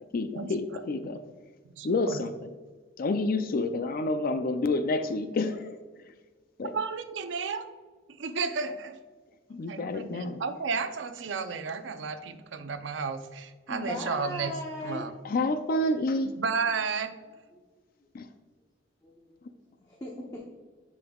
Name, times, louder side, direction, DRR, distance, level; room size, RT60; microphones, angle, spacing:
voice 1, 0.1-1.2 1.8-2.5 3.0-5.8 6.6-6.8 9.5-10.4 15.2-16.3 18.1-18.3, left 2 dB, 50° left, 9 dB, 0.4 m, -29 dB
voice 2, 1.6-2.2 6.7-7.7 8.2-9.0 9.7-14.6 14.8-15.1 16.4-17.2, right 5 dB, 75° right, 9 dB, 0.6 m, -32 dB
voice 3, 13.7-15.1 17.5-17.6 19.0-19.5 19.9-20.4, left 1 dB, 20° left, -2 dB, 0.8 m, -37 dB
10.5 x 5.3 x 2.3 m, 1.4 s
head